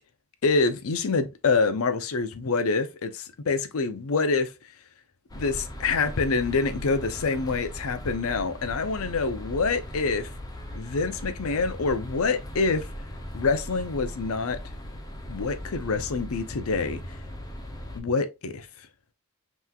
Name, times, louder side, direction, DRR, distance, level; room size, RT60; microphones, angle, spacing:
voice 1, 0.4-4.5 5.3-10.3 10.7-12.9 13.3-14.6 15.3-17.0 17.9-18.7, left 4 dB, 70° left, 0.6 m, -26 dB
sound 1, 5.3-18.0, equal, 15° left, 0.6 m, -38 dB
5.6 x 3.1 x 2.3 m
head